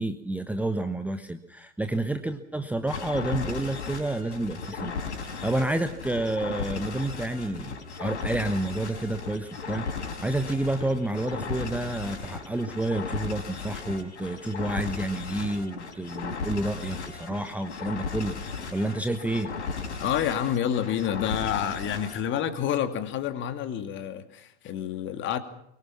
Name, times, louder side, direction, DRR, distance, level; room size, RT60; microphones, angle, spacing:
voice 1, 0.0-19.5, right 1 dB, 5° right, 9 dB, 1.2 m, -30 dB
sound 1, 2.9-22.2, left 5 dB, 65° left, 5.3 m, -36 dB
voice 2, 20.0-25.4, left 9 dB, 30° left, 9 dB, 2.6 m, -28 dB
23.5 x 23.0 x 6.1 m, 0.74 s
figure-of-eight pair, 95°, 37 cm